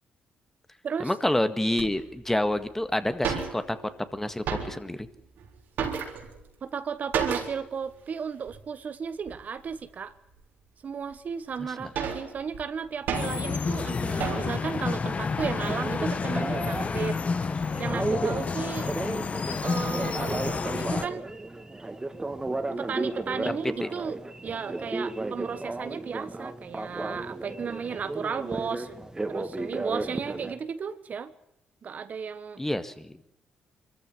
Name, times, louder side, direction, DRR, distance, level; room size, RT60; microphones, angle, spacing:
voice 1, 1.0-3.8 4.1-5.1 11.8-11.9 23.4-23.9 32.6-33.1, left 1 dB, 10° left, 11 dB, 1.9 m, -28 dB
sound 1, 1.8-1.9 2.6-2.7 2.8-2.9 3.1-4.0 4.3-5.0 5.4-6.5 7.1-7.7 8.0-8.1 8.5-8.7 9.3-9.8 10.3-10.4 11.1-11.2 11.6-13.6 14.2-14.7 15.1-15.6, right 6 dB, 75° right, 4.0 m, -32 dB
voice 2, 6.6-10.1 10.8-17.2 17.8-18.9 19.6-21.3 22.7-24.2 24.4-29.0 29.3-31.3 31.8-32.6, right 6 dB, 55° right, 12 dB, 1.3 m, -34 dB
sound 2, 13.1-21.1, left 4 dB, 45° left, 1.5 m, -30 dB
Telephone, 13.4-30.5, right 2 dB, 20° right, 2.5 m, -35 dB
23.5 x 14.5 x 9.8 m, 0.79 s
supercardioid pair, 65°, 3 cm